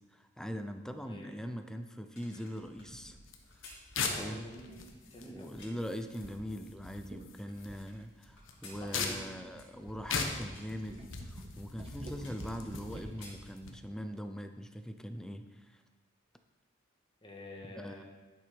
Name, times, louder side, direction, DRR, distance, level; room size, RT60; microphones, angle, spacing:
voice 1, 0.1-3.2 4.2-4.5 5.2-11.0 11.3-15.8 17.8-18.0, equal, 5° left, 7 dB, 0.5 m, -42 dB
sound 1, 2.2-6.0 6.5-8.0 8.4-10.2 10.5-10.8 11.4-11.5 11.8-12.8 13.1-14.1 14.5-14.6, left 2 dB, 65° left, 2.5 m, -56 dB
sound 2, 2.6-3.2 4.1-5.0 5.5-5.8 6.2-6.5 6.8-6.9 7.0-7.2 7.7-9.5 10.0-13.3, right 1 dB, 30° right, 1.2 m, -49 dB
sound 3, 3.3-13.7, left 5 dB, 80° left, 1.1 m, -41 dB
voice 2, 4.0-5.6 8.8-9.3 17.2-18.0, left 1 dB, 25° left, 0 dB, 1.7 m, -47 dB
11.0 x 6.8 x 5.2 m, 1.2 s
head